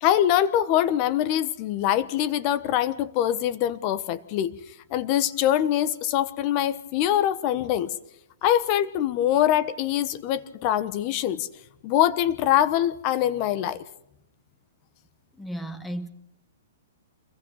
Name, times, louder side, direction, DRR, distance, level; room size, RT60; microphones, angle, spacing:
voice 1, 0.0-4.5 4.9-7.9 8.4-11.5 11.8-13.8, left 11 dB, 25° left, 1.1 m, -23 dB
voice 2, 15.4-16.1, right 1 dB, 5° left, 1.4 m, -34 dB
29.0 x 22.5 x 4.1 m
hypercardioid pair, 175°, 0 cm